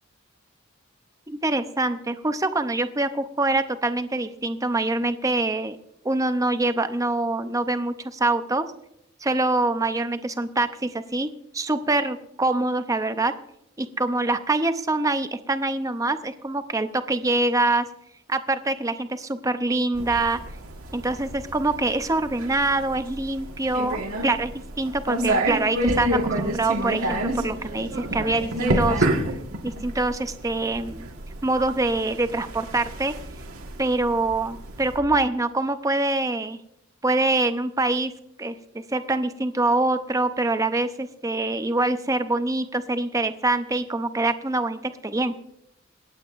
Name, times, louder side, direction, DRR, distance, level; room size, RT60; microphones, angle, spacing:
voice 1, 1.3-5.8 6.0-8.6 9.2-13.3 13.8-17.8 18.3-20.4 20.9-24.5 24.8-29.1 29.6-31.1 31.4-33.1 33.8-36.6 37.0-38.1 38.4-38.6 38.9-45.4, right 2 dB, 15° right, 10 dB, 0.6 m, -25 dB
sound 1, 20.0-35.0, right 1 dB, 85° right, 1.7 m, -29 dB
26.5 x 8.8 x 2.5 m, 0.80 s
head